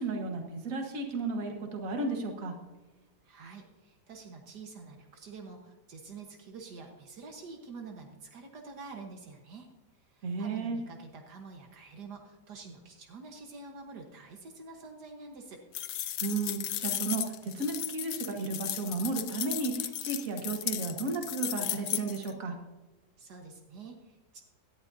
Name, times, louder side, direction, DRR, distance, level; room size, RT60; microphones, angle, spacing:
voice 1, 0.0-2.6 10.2-10.8 16.2-22.6, right 3 dB, 55° right, 3 dB, 1.8 m, -33 dB
voice 2, 3.2-9.7 10.1-15.6 23.2-24.4, right 4 dB, 75° right, 3 dB, 1.8 m, -47 dB
sound 1, 15.7-22.3, left 12 dB, 90° left, 1.3 m, -35 dB
17.5 x 12.0 x 2.7 m, 1.1 s
omnidirectional pair, 1.8 m